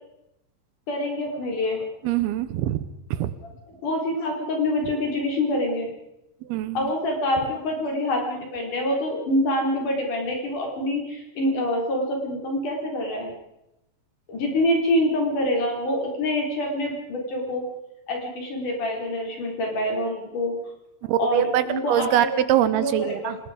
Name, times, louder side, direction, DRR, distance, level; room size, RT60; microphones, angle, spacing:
voice 1, 0.9-1.8 3.7-5.9 6.7-13.3 14.3-17.7 18.1-20.5 21.2-22.4 22.7-23.4, left 1 dB, 55° left, 1 dB, 5.4 m, -26 dB
voice 2, 2.0-2.8 3.1-3.3 6.4-6.9 21.1-23.4, right 12 dB, 80° right, 14 dB, 2.8 m, -23 dB
26.5 x 19.5 x 5.0 m, 0.88 s
omnidirectional pair, 4.5 m